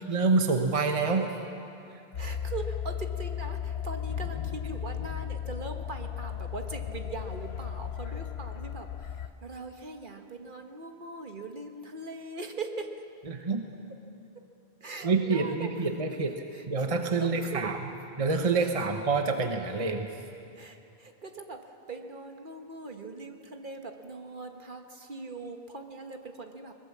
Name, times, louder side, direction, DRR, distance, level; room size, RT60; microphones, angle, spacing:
voice 1, 0.1-1.3 13.3-13.7 15.0-17.8 18.2-20.1, right 4 dB, 35° right, 5 dB, 1.1 m, -27 dB
sound 1, 2.1-9.3, left 9 dB, 80° left, 1.0 m, -35 dB
voice 2, 2.1-9.2 9.4-12.9 14.8-15.7 16.5-16.6 17.1-17.7 18.6-18.7 20.6-26.7, right 3 dB, 55° right, 5 dB, 1.5 m, -41 dB
22.0 x 20.5 x 7.4 m, 2.7 s
omnidirectional pair, 1.1 m